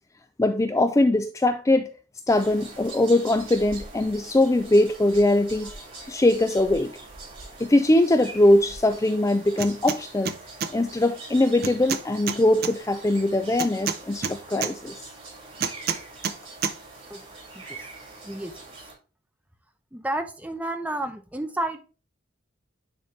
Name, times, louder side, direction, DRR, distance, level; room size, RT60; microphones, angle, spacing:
voice 1, 0.4-1.9 2.3-5.7 6.1-6.9 7.6-10.4 10.7-15.0, left 1 dB, 15° left, 8 dB, 0.4 m, -21 dB
sound 1, 2.3-18.9, right 3 dB, 30° right, 3.9 m, -43 dB
sound 2, 9.6-10.0 10.3-10.7 11.6-12.7 13.6-14.7 15.6-16.4 16.6-16.8, right 7 dB, 55° right, 0.7 m, -28 dB
voice 2, 19.9-21.8, right 1 dB, 10° right, 6 dB, 0.8 m, -30 dB
9.4 x 4.2 x 3.2 m, 0.34 s
head